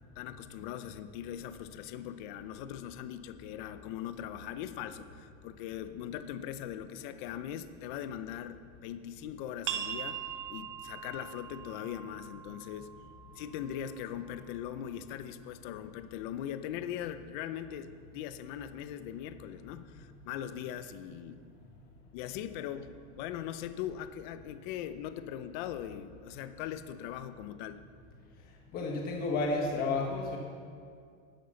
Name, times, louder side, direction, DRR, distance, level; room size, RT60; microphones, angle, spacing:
voice 1, 0.2-10.2 10.5-12.9 13.4-21.4 22.1-22.9 23.1-27.8, left 10 dB, 40° left, 11 dB, 0.5 m, -40 dB
sound 1, 9.7-15.0, right 9 dB, 75° right, 1.2 m, -42 dB
voice 2, 28.7-30.4, left 3 dB, 25° left, 0 dB, 1.2 m, -31 dB
12.0 x 9.6 x 6.9 m, 2.2 s
supercardioid pair, 170°, 37 cm